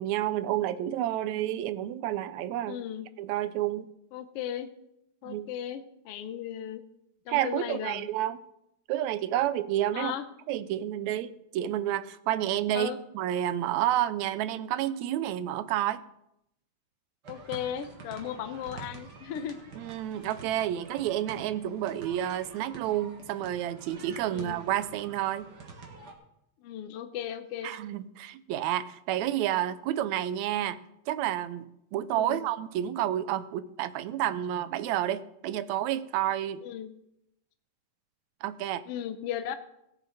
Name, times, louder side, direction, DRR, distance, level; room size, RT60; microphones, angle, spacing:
voice 1, 0.0-2.8 3.2-3.9 5.3-5.5 7.3-8.4 8.9-10.1 10.5-16.0 19.8-25.5 27.6-30.8 31.1-36.6 38.4-38.8, right 12 dB, 80° right, 14 dB, 1.9 m, -30 dB
voice 2, 2.7-3.1 4.1-4.7 5.2-6.8 7.3-8.1 9.9-10.2 12.7-13.0 17.3-19.6 24.3-24.6 26.6-27.8 32.1-32.4 36.6-36.9 38.9-39.6, left 9 dB, 70° left, 9 dB, 1.4 m, -36 dB
sound 1, 17.2-26.1, right 4 dB, 40° right, 1.8 m, -47 dB
17.5 x 9.4 x 4.1 m, 0.82 s
omnidirectional pair, 3.3 m